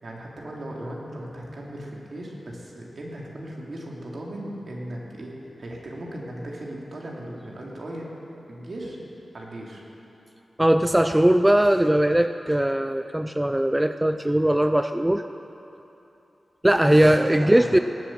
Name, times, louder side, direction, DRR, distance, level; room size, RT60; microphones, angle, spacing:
voice 1, 0.0-8.1 8.5-9.0 9.3-9.8 16.9-17.7, right 1 dB, 65° right, -3 dB, 2.9 m, -37 dB
voice 2, 10.6-15.2 16.6-17.8, right 1 dB, 15° right, 9 dB, 0.5 m, -20 dB
18.0 x 8.4 x 7.5 m, 3.0 s
cardioid pair, 50°, 0 cm